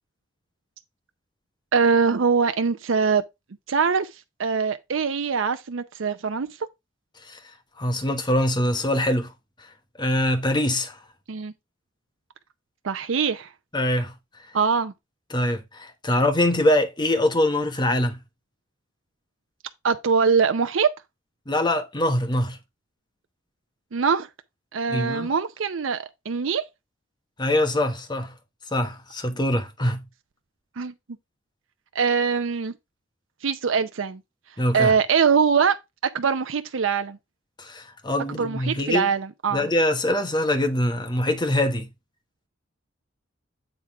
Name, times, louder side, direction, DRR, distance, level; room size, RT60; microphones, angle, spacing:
voice 1, 1.7-3.2 3.7-4.1 4.4-6.5 11.3-11.5 12.8-13.5 14.5-14.9 19.8-20.9 23.9-24.3 24.7-26.6 30.8-30.9 31.9-32.7 33.4-34.2 34.7-35.8 36.1-37.2 38.4-39.7, right 5 dB, 70° right, 0.6 m, -22 dB
voice 2, 7.8-9.3 10.0-11.0 13.7-14.1 15.3-18.2 21.5-22.6 24.9-25.3 27.4-28.3 28.7-30.0 34.6-34.9 37.6-39.1 39.5-41.9, left 1 dB, 20° left, 1.1 m, -23 dB
7.9 x 3.6 x 4.6 m
head